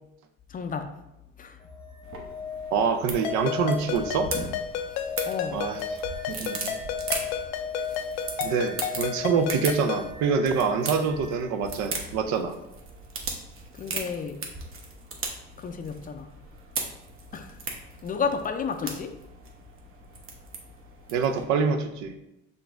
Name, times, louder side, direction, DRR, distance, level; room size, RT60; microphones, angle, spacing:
voice 1, 0.5-0.9 1.4-1.7 5.3-5.7 13.7-14.4 15.6-16.3 17.3-19.1, left 5 dB, 30° left, 7 dB, 0.4 m, -32 dB
sound 1, 1.6-11.4 13.8-13.9, left 6 dB, 5° left, 0.9 m, -38 dB
sound 2, 2.0-21.4, right 4 dB, 45° right, 1.0 m, -38 dB
voice 2, 2.7-4.3 5.5-5.8 6.3-6.8 8.4-12.6 21.1-22.1, right 5 dB, 70° right, 8 dB, 0.6 m, -26 dB
Ringtone, 3.2-10.1, left 8 dB, 80° left, 0.5 m, -33 dB
5.6 x 2.6 x 3.3 m, 0.89 s
supercardioid pair, 85°, 30 cm